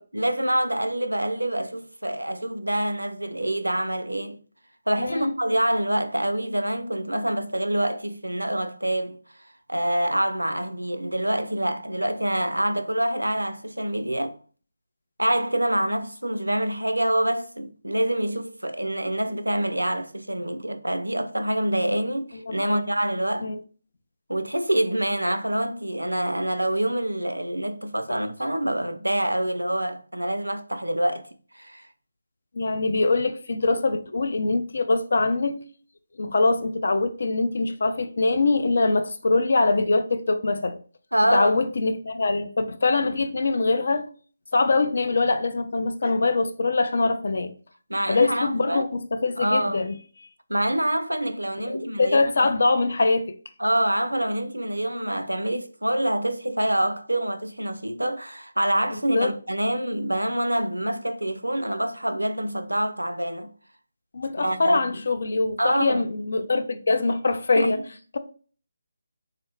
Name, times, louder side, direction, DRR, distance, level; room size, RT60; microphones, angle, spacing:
voice 1, 0.1-4.4 4.9-9.2 9.7-14.4 15.2-23.5 24.3-31.3 31.5-31.9 41.1-41.5 47.9-48.9 49.4-49.8 50.5-52.5 53.6-63.5 64.4-65.0 65.6-66.0 67.5-67.8, right 1 dB, 85° right, 0.4 m, -26 dB
voice 2, 5.0-5.3 22.5-22.8 23.4-23.6 32.5-35.6 36.2-40.8 41.3-44.1 44.5-47.5 48.1-50.0 51.7-53.4 58.9-59.3 64.1-67.8, left 3 dB, 55° left, 0.4 m, -23 dB
3.8 x 2.1 x 3.3 m
figure-of-eight pair, 155°, 0 cm